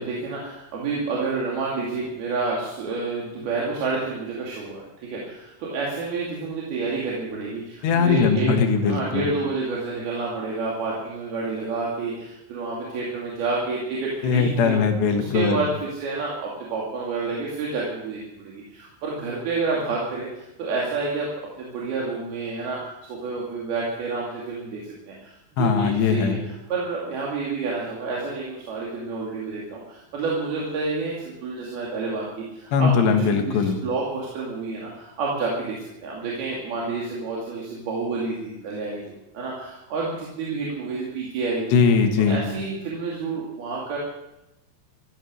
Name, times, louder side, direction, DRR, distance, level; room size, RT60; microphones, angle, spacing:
voice 1, 0.0-8.5 8.8-14.7 15.1-21.3 21.6-22.8 23.1-24.8 25.1-32.9 33.2-41.8 42.3-44.0, right 3 dB, 65° right, -4 dB, 4.3 m, -29 dB
voice 2, 7.8-9.3 14.2-15.7 25.6-26.4 32.7-33.8 41.7-42.4, left 6 dB, 80° left, 5 dB, 3.7 m, -20 dB
14.5 x 14.5 x 6.5 m, 0.92 s
omnidirectional pair, 4.9 m